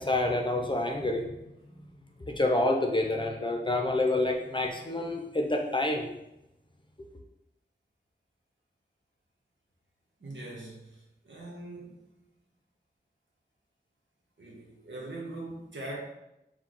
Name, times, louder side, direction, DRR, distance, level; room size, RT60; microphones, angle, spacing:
voice 1, 0.0-1.4 2.3-6.1, left 2 dB, 25° left, 2 dB, 0.6 m, -28 dB
voice 2, 10.2-11.0 11.2-12.1 14.4-16.0, right 2 dB, 85° right, -3 dB, 1.1 m, -41 dB
4.6 x 2.3 x 3.8 m, 0.87 s
wide cardioid pair, 55°, 19 cm